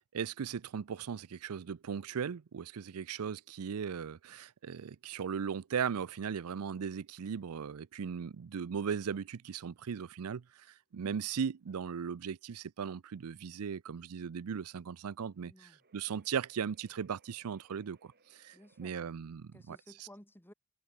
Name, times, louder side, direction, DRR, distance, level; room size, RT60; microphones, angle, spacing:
voice 1, 0.0-19.8, right 7 dB, 80° right, 0.5 m, -38 dB
sound 1, 1.3-19.1, right 3 dB, 45° right, 4.5 m, -73 dB
voice 2, 15.4-15.8 18.5-19.2 19.5-20.5, left 1 dB, 10° left, 2.9 m, -56 dB
head